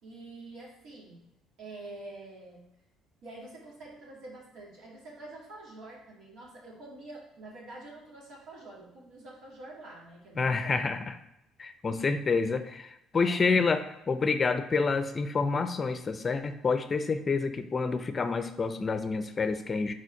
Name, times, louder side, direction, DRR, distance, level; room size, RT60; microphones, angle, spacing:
voice 1, 0.0-1.2 1.6-2.6 3.2-10.8 13.1-13.4, right 2 dB, 70° right, -4 dB, 2.4 m, -46 dB
voice 2, 10.4-11.0 11.6-13.8 14.1-19.9, left 4 dB, 35° left, 9 dB, 0.5 m, -28 dB
4.9 x 4.3 x 4.7 m, 0.85 s
supercardioid pair, 75°, 0 cm